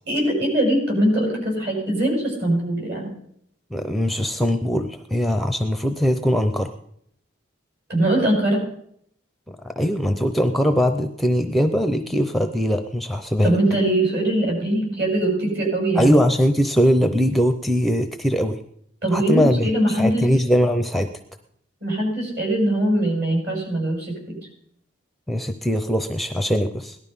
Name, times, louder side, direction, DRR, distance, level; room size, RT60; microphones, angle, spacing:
voice 1, 0.1-3.1 7.9-8.6 13.4-16.2 19.0-20.3 21.8-24.4, right 1 dB, 55° right, -1 dB, 7.2 m, -22 dB
voice 2, 3.7-6.7 9.5-13.6 16.0-18.6 19.1-21.1 25.3-27.0, equal, ahead, 7 dB, 0.6 m, -21 dB
18.0 x 12.0 x 5.5 m, 0.69 s
head